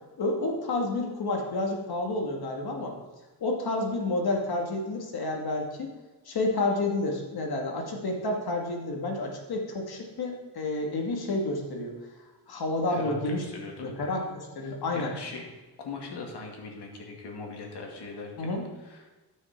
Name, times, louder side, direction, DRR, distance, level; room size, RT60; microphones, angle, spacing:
voice 1, 0.2-3.0 3.4-5.9 6.3-11.9 12.5-13.4 13.8-15.1 18.4-18.6, left 2 dB, 65° left, 1 dB, 2.4 m, -30 dB
voice 2, 12.9-14.0 14.9-15.5 15.8-18.5 18.8-19.1, left 4 dB, 90° left, 0 dB, 2.5 m, -39 dB
12.5 x 6.4 x 6.1 m, 1.2 s
wide cardioid pair, 130°, 39 cm